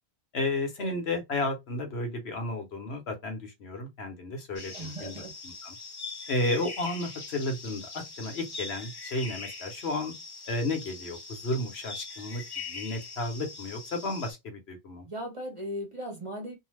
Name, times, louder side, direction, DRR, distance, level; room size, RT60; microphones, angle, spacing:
voice 1, 0.3-5.7 6.3-10.1 10.5-15.1, left 2 dB, 75° left, 1.1 m, -33 dB
sound 1, 4.6-14.3, left 4 dB, 30° left, 0.6 m, -42 dB
voice 2, 4.7-5.3 15.0-16.6, equal, 30° right, 1.0 m, -37 dB
2.7 x 2.1 x 3.1 m
omnidirectional pair, 1.1 m